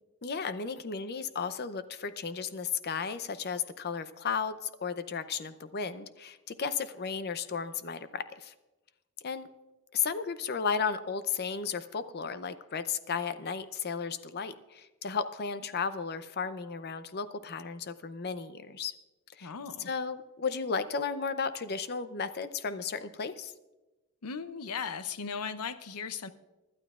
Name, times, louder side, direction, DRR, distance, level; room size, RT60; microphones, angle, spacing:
voice 1, 0.2-8.5 9.2-9.5 9.9-18.9 19.4-19.5 19.9-23.5, left 6 dB, 45° left, 13 dB, 0.6 m, -34 dB
voice 2, 19.4-19.9 24.2-26.3, left 6 dB, 90° left, 12 dB, 0.7 m, -37 dB
24.5 x 12.0 x 2.4 m, 1.1 s
head